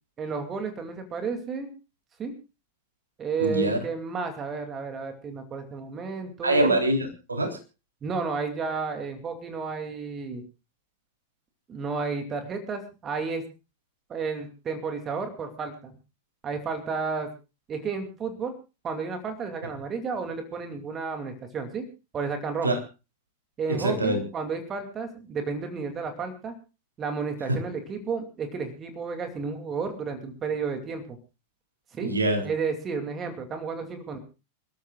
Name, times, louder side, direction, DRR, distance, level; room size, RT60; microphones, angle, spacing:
voice 1, 0.2-1.7 2.2-2.3 3.2-6.8 8.0-10.4 11.7-13.4 14.1-16.0 16.4-17.3 17.7-18.5 18.8-21.9 22.1-22.8 23.6-26.5 27.0-31.2 31.9-32.1 32.4-34.2, right 5 dB, 25° right, 6 dB, 2.6 m, -32 dB
voice 2, 3.4-3.8 6.4-7.6 22.6-22.8 23.7-24.2 32.0-32.4, right 1 dB, 80° right, 3 dB, 3.5 m, -24 dB
28.5 x 13.5 x 2.4 m, 0.31 s
figure-of-eight pair, 90°, 0 cm